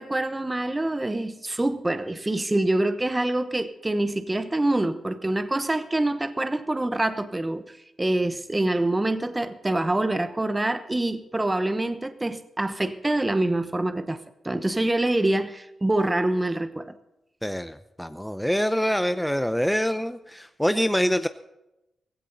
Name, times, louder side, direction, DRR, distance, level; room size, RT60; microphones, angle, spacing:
voice 1, 0.0-16.9, right 1 dB, 20° right, 11 dB, 1.0 m, -26 dB
voice 2, 17.4-21.3, equal, 5° left, 11 dB, 0.6 m, -25 dB
16.0 x 16.0 x 4.0 m, 0.91 s
cardioid pair, 60°, 0 cm